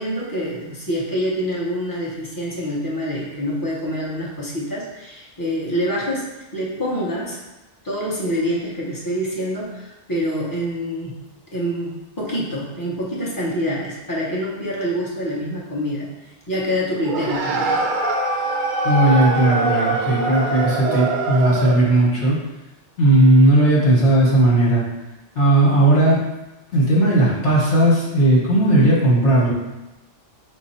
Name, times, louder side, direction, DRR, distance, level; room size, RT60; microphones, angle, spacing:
voice 1, 0.0-6.3 6.5-7.4 7.8-11.2 11.5-16.1 16.5-17.8, equal, 20° left, -5 dB, 0.9 m, -26 dB
sound 1, 17.0-21.9, right 2 dB, 60° right, 0.5 m, -23 dB
voice 2, 18.8-22.4 23.0-24.8 25.4-26.2 26.7-29.5, right 1 dB, 70° left, -5 dB, 1.4 m, -16 dB
5.6 x 2.1 x 4.2 m, 1.0 s
omnidirectional pair, 1.2 m